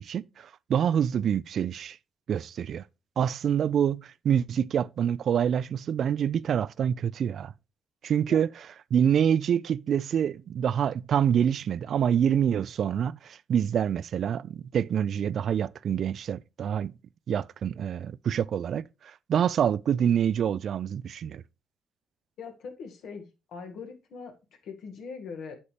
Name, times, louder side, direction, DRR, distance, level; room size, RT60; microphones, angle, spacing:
voice 1, 0.0-2.0 2.3-2.9 3.2-7.5 8.0-8.5 8.9-17.0 17.3-21.4, right 8 dB, 60° right, 0.3 m, -26 dB
voice 2, 22.4-23.2 23.5-24.3 24.6-25.5, left 5 dB, 75° left, 1.9 m, -41 dB
8.5 x 7.1 x 3.3 m
cardioid pair, 90°, 0 cm